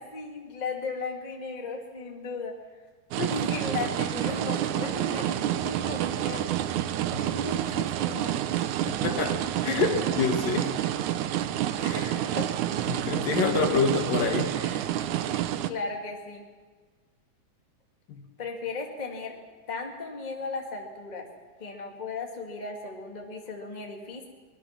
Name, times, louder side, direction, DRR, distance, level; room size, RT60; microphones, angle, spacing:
voice 1, 0.0-2.5 3.3-6.5 7.2-8.3 11.9-12.5 15.7-16.4 18.4-19.4 19.7-21.3 21.6-24.3, left 4 dB, 15° left, 1 dB, 2.2 m, -36 dB
sound 1, 3.1-15.7, right 12 dB, 75° right, 2.0 m, -28 dB
voice 2, 8.8-10.7 11.8-12.2 12.9-14.8 18.1-18.2, left 5 dB, 80° left, 3 dB, 4.0 m, -28 dB
24.0 x 20.5 x 6.0 m, 1.4 s
omnidirectional pair, 3.9 m